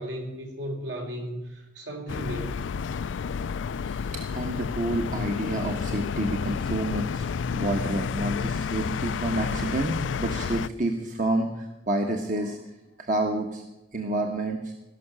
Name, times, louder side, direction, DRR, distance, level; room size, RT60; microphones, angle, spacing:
voice 1, 0.0-2.7, equal, 70° right, 1 dB, 3.9 m, -35 dB
sound 1, 2.1-10.7, left 6 dB, 75° left, 0.4 m, -30 dB
voice 2, 3.9-7.3 7.5-12.6 13.0-13.6 13.9-14.7, right 1 dB, 45° right, 3 dB, 1.2 m, -29 dB
17.0 x 6.6 x 10.0 m, 0.99 s
head